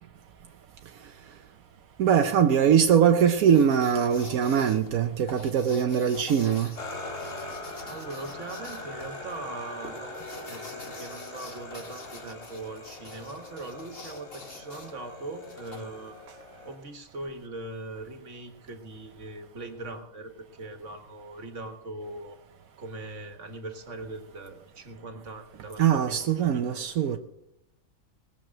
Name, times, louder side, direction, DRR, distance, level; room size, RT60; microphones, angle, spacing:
voice 1, 2.0-6.7 25.8-27.2, right 8 dB, 85° right, 1.2 m, -22 dB
sound 1, 3.5-16.3, left 2 dB, 45° left, 1.8 m, -47 dB
sound 2, 6.7-16.8, left 2 dB, 60° left, 3.0 m, -42 dB
voice 2, 7.6-16.2 16.6-22.4 22.8-26.3 26.7-26.8, right 2 dB, 60° right, 1.9 m, -41 dB
19.5 x 7.0 x 7.6 m
omnidirectional pair, 1.5 m